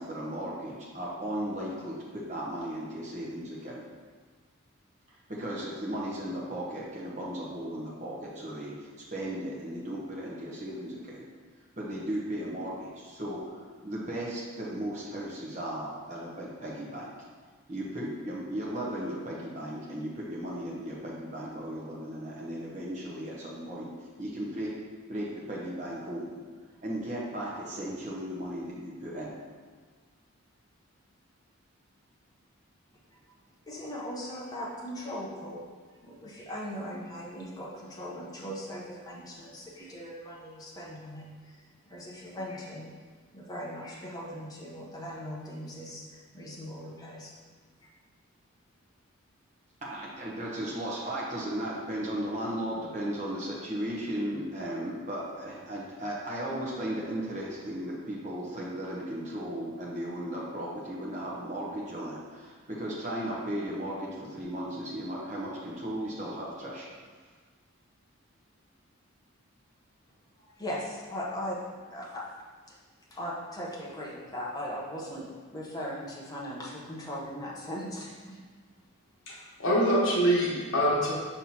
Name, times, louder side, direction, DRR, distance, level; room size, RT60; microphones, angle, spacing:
voice 1, 0.0-3.8 5.3-11.3 11.8-13.6 13.8-17.1 17.7-23.9 24.2-24.7 25.1-26.4 26.8-29.3 49.8-66.9, right 1 dB, 35° right, -5 dB, 1.0 m, -36 dB
voice 2, 33.7-35.7 36.0-41.6 41.9-42.9 43.3-47.3 70.4-71.6 71.9-72.3 72.7-72.8 73.1-78.4, equal, 20° left, -5 dB, 1.0 m, -39 dB
voice 3, 79.3-81.1, equal, 70° left, -4 dB, 1.4 m, -25 dB
5.8 x 5.6 x 3.0 m, 1.5 s
head